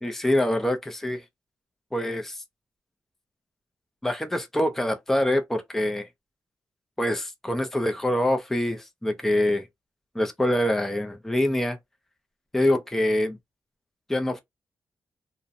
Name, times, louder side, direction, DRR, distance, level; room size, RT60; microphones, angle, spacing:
voice 1, 0.0-1.2 1.9-2.4 4.0-6.1 7.0-9.7 10.1-11.8 12.5-13.4 14.1-14.4, left 1 dB, 5° left, 0.4 m, -25 dB
2.5 x 2.0 x 2.6 m
wide cardioid pair, 135°, 6 cm